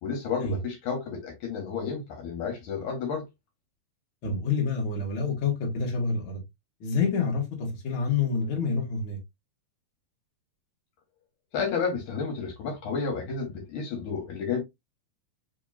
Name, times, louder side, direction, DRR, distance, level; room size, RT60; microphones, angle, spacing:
voice 1, 0.0-3.2 11.5-14.6, left 5 dB, 70° left, 2.5 m, -31 dB
voice 2, 4.2-6.4 6.8-9.2, left 4 dB, 50° left, 1.9 m, -27 dB
5.1 x 2.9 x 2.3 m
omnidirectional pair, 3.7 m